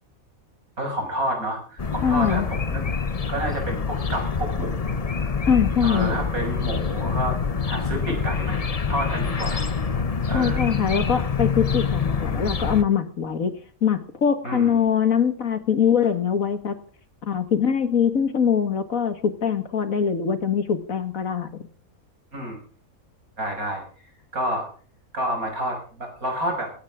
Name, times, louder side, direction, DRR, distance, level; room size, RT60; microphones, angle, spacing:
voice 1, 0.8-2.8 3.3-5.4 5.8-7.4 7.7-8.6 8.9-9.7 10.3-10.8 14.4-14.8 22.3-22.6 23.4-23.8 24.3-24.7 25.1-26.7, right 1 dB, 80° right, 3 dB, 6.7 m, -29 dB
sound 1, 1.8-12.8, left 5 dB, 30° left, 0.9 m, -26 dB
voice 2, 2.0-2.5 5.5-6.2 10.3-16.8 17.2-21.6, left 7 dB, 70° left, 10 dB, 2.2 m, -23 dB
17.5 x 17.0 x 3.7 m, 0.43 s
omnidirectional pair, 1.5 m